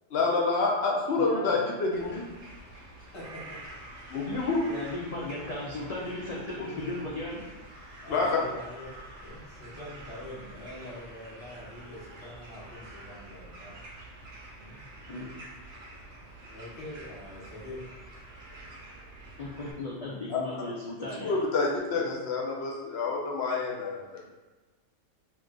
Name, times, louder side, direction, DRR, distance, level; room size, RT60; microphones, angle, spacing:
voice 1, 0.1-2.2 4.1-4.6 8.1-8.3 20.3-20.4 21.2-24.3, left 3 dB, 65° left, -2 dB, 0.8 m, -28 dB
voice 2, 1.2-1.6 4.7-7.4 15.1-15.2 19.4-21.4, left 2 dB, 80° left, -5 dB, 0.3 m, -36 dB
sound 1, 1.9-19.7, right 1 dB, 70° right, 0.9 m, -47 dB
voice 3, 3.1-3.6 3.9-4.0 6.5-7.0 8.0-8.9 9.2-13.8 14.6-14.8 16.5-17.8, left 1 dB, 25° left, -6 dB, 0.9 m, -44 dB
2.6 x 2.4 x 3.7 m, 1.2 s
omnidirectional pair, 1.3 m